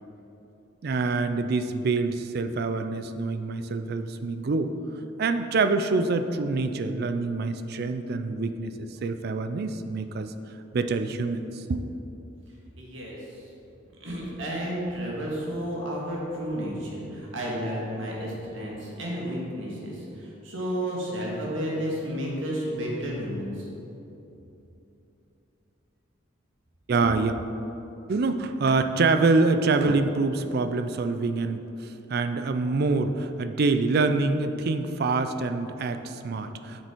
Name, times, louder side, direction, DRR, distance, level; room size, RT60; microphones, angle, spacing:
voice 1, 0.8-4.7 5.2-10.3 10.7-11.9 26.9-27.3 28.1-36.9, right 3 dB, 50° right, 9 dB, 0.4 m, -26 dB
voice 2, 12.8-13.2 14.0-23.6, equal, 75° right, -3 dB, 1.9 m, -32 dB
7.5 x 6.9 x 4.5 m, 2.9 s
head